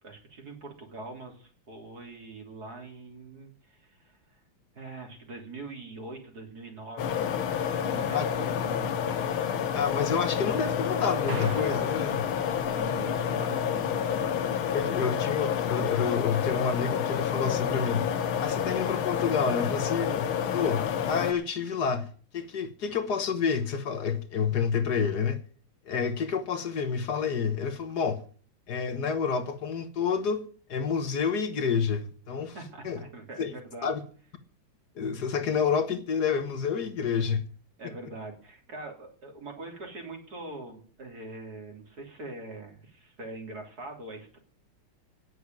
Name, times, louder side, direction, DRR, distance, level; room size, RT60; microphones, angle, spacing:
voice 1, 0.0-4.4 4.7-9.1 12.7-14.3 32.5-33.9 37.8-44.4, right 2 dB, 45° right, 3.8 m, -43 dB
sound 1, 7.0-21.3, left 8 dB, 90° left, 1.9 m, -29 dB
voice 2, 9.7-12.3 14.7-18.1 18.4-22.1 22.3-25.4 25.8-28.2 28.7-32.5 32.8-33.0 33.4-33.6 33.8-34.0 34.9-37.4, left 6 dB, 55° left, 1.6 m, -29 dB
sound 2, 11.3-13.7, right 6 dB, 65° right, 2.2 m, -41 dB
10.0 x 8.2 x 9.3 m
omnidirectional pair, 2.3 m